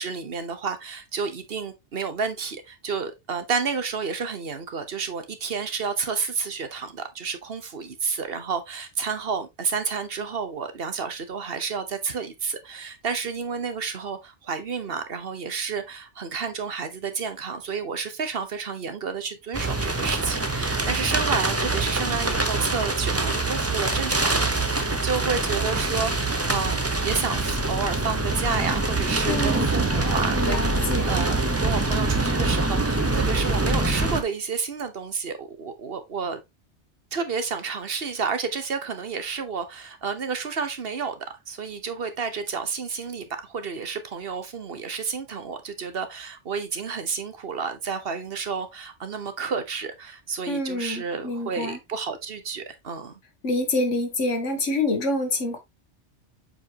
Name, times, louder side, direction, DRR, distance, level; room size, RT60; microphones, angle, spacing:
voice 1, 0.0-26.8 27.0-36.4 37.1-41.1 41.5-53.1, right 5 dB, 55° right, 1.3 m, -30 dB
sound 1, 19.5-34.2, right 2 dB, 15° right, 0.7 m, -24 dB
voice 2, 29.3-29.7 30.3-31.1 50.5-51.8 53.4-55.6, left 2 dB, 90° left, 1.8 m, -26 dB
7.8 x 5.0 x 2.9 m
omnidirectional pair, 1.2 m